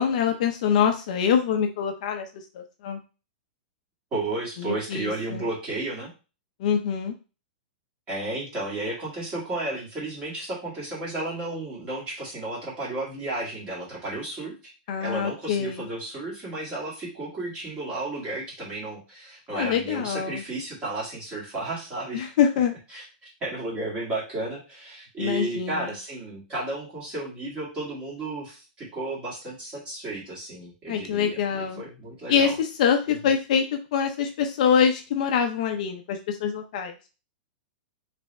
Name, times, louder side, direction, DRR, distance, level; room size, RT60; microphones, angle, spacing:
voice 1, 0.0-2.3 2.5-3.0 4.6-5.4 6.6-7.1 14.9-15.9 19.5-20.4 22.1-22.7 25.2-25.9 30.9-31.8 32.3-36.9, left 7 dB, 45° left, 5 dB, 0.6 m, -24 dB
voice 2, 4.1-6.1 8.1-14.5 15.0-22.3 22.9-32.6 33.1-33.2, right 2 dB, 20° right, -5 dB, 2.0 m, -33 dB
3.4 x 3.4 x 4.1 m, 0.32 s
supercardioid pair, 175°, 5 cm